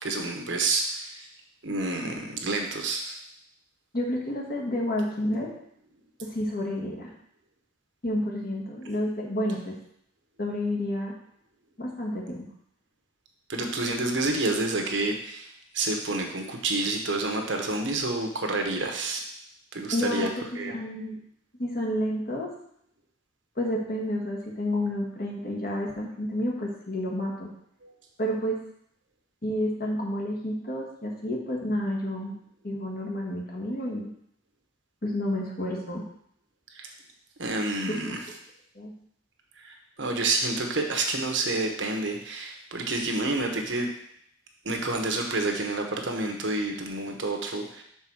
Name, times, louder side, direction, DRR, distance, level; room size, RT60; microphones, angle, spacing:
voice 1, 0.0-1.3 1.6-3.2 13.5-19.2 19.7-20.3 20.5-20.7 27.8-27.9 36.7-36.9 37.4-38.2 39.6-43.9 44.6-47.8, right 2 dB, 70° right, 3 dB, 1.1 m, -29 dB
voice 2, 3.9-5.5 6.2-7.1 8.0-9.8 10.4-11.1 11.8-12.4 19.9-21.2 21.6-22.5 23.5-27.5 28.2-28.6 29.4-32.4 32.6-34.1 35.0-36.0 38.0-38.1 38.7-38.9, left 1 dB, 50° left, -1 dB, 1.5 m, -30 dB
5.7 x 4.0 x 6.1 m, 0.69 s
head